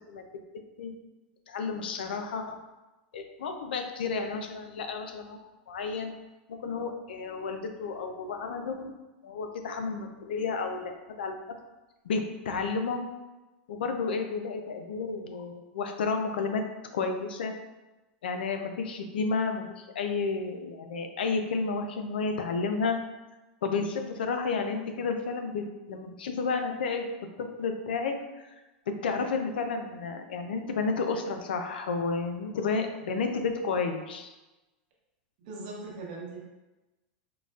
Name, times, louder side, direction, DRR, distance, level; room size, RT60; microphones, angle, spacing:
voice 1, 1.5-2.6 3.1-5.4 5.7-6.1 6.6-8.9 9.2-11.4 12.0-13.0 13.7-16.6 16.9-17.5 18.2-23.0 23.6-27.1 27.4-28.5 29.0-34.3, left 4 dB, 90° left, 5 dB, 0.4 m, -31 dB
voice 2, 35.4-36.4, right 3 dB, 60° right, -2 dB, 0.9 m, -40 dB
3.8 x 2.1 x 2.3 m, 1.1 s
supercardioid pair, 125°, 5 cm